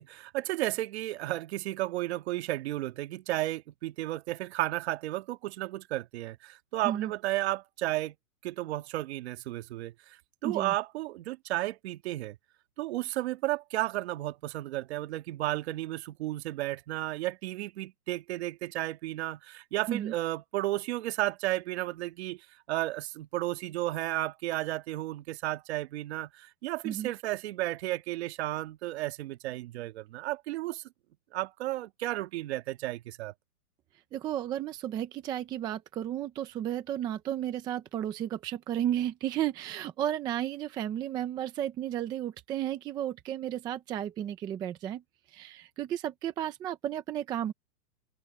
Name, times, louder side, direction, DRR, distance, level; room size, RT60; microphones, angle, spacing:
voice 1, 0.0-8.2 8.4-12.4 12.8-22.4 22.7-30.8 31.3-33.3, right 16 dB, 45° right, 1.8 m, -33 dB
voice 2, 10.4-10.7 19.9-20.1 26.8-27.1 34.1-45.0 45.3-47.5, right 11 dB, 10° right, 0.5 m, -33 dB
hypercardioid pair, 155°, 44 cm